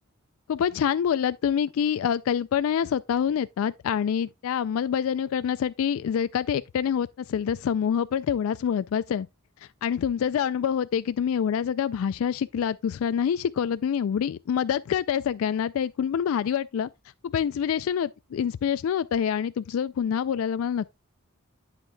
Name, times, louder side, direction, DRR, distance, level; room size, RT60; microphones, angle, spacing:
voice 1, 0.5-9.3 9.8-16.9 17.2-21.0, left 8 dB, 70° left, 0.3 m, -26 dB
8.7 x 8.1 x 2.2 m
head